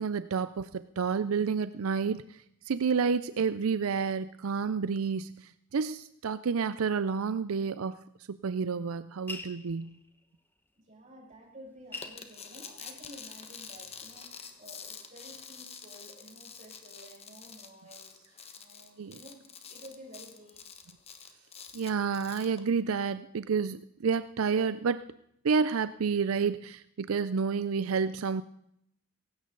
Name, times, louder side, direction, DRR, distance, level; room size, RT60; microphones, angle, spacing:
voice 1, 0.0-8.0 8.4-10.0 19.0-19.2 21.7-25.0 25.4-28.4, right 5 dB, 85° right, 14 dB, 0.5 m, -30 dB
sound 1, 9.3-10.2 11.3-11.4 11.7-13.3 13.8-14.4, left 2 dB, 10° left, 1.0 m, -44 dB
voice 2, 10.9-18.3 18.5-20.6 20.9-21.0, right 1 dB, 35° right, -3 dB, 6.2 m, -52 dB
sound 2, 12.0-22.6, left 6 dB, 30° left, 1.3 m, -47 dB
17.5 x 16.0 x 3.9 m, 0.74 s
head